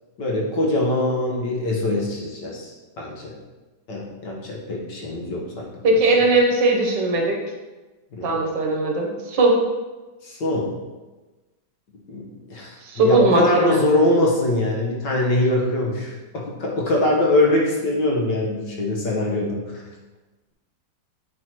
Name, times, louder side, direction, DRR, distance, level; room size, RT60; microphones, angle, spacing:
voice 1, 0.2-3.3 3.9-5.9 8.1-8.4 10.2-10.7 12.1-19.8, left 1 dB, 75° left, -2 dB, 1.9 m, -23 dB
voice 2, 5.8-7.4 8.2-9.5 12.8-13.9, right 2 dB, 85° right, 1 dB, 1.7 m, -19 dB
9.1 x 4.1 x 3.0 m, 1.2 s
omnidirectional pair, 1.9 m